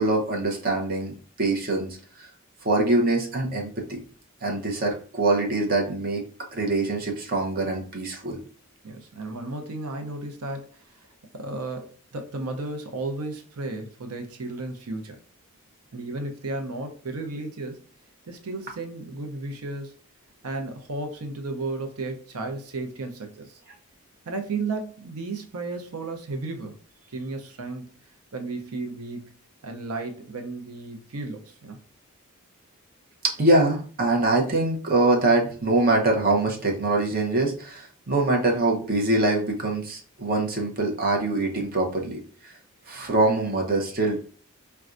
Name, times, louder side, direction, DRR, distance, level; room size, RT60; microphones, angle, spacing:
voice 1, 0.0-2.3 2.6-4.0 4.4-6.2 6.5-8.4 33.2-42.5 42.9-44.2, right 2 dB, 40° right, 1 dB, 0.7 m, -24 dB
voice 2, 8.8-11.1 11.3-15.2 15.9-17.8 18.2-19.9 20.4-23.6 24.3-26.8 27.1-28.0 28.3-29.3 29.6-31.8, right 3 dB, 85° right, 5 dB, 0.6 m, -34 dB
4.2 x 2.3 x 2.5 m, 0.42 s
head